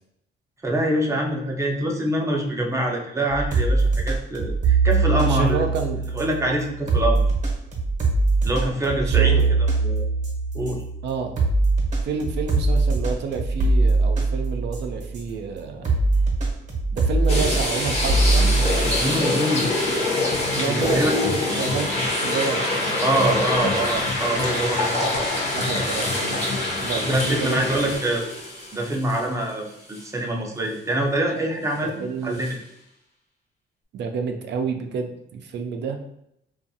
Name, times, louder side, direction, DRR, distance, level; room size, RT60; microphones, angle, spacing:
voice 1, 0.6-5.6 6.1-7.2 8.4-10.0 10.5-10.8 19.0-19.7 20.6-21.1 23.0-25.2 27.0-28.2 28.7-32.6, right 1 dB, 15° right, 0 dB, 0.6 m, -25 dB
sound 1, 3.3-15.3 15.8-19.0, right 3 dB, 40° right, 0.8 m, -22 dB
voice 2, 5.2-6.0 8.9-9.5 11.0-11.3 12.0-15.9 16.9-18.5 20.5-21.9 22.2-22.7 25.0-26.4 26.8-27.9 31.8-32.4 33.9-36.1, right 5 dB, 60° right, 4 dB, 0.4 m, -29 dB
sound 2, 17.3-29.5 29.9-30.0 32.4-32.5, left 1 dB, 30° left, 0.8 m, -26 dB
sound 3, 18.4-28.0, left 3 dB, 70° left, 0.6 m, -31 dB
2.5 x 2.3 x 2.6 m, 0.77 s
cardioid pair, 90°, 20 cm